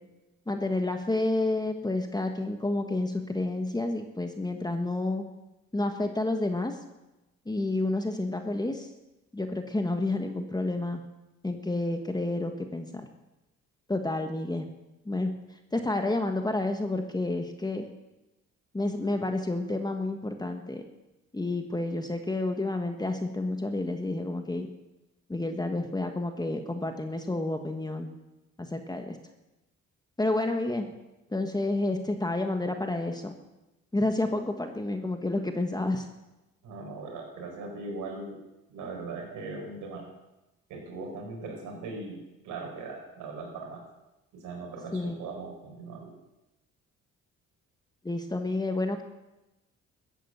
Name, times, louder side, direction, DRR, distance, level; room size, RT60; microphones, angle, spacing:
voice 1, 0.5-5.2 5.7-6.8 7.4-8.9 9.3-11.0 11.4-13.0 13.9-14.7 15.0-15.3 15.7-17.9 18.7-20.8 21.3-24.7 25.3-28.1 28.6-29.2 30.2-30.9 31.3-33.3 33.9-36.1 44.9-45.2 48.0-49.0, left 2 dB, 15° left, 5 dB, 1.5 m, -30 dB
voice 2, 36.6-38.4 38.7-40.1 40.7-43.8 44.3-46.1, right 3 dB, 90° right, 0 dB, 5.2 m, -39 dB
14.0 x 10.5 x 8.1 m, 0.99 s
cardioid pair, 90°, 30 cm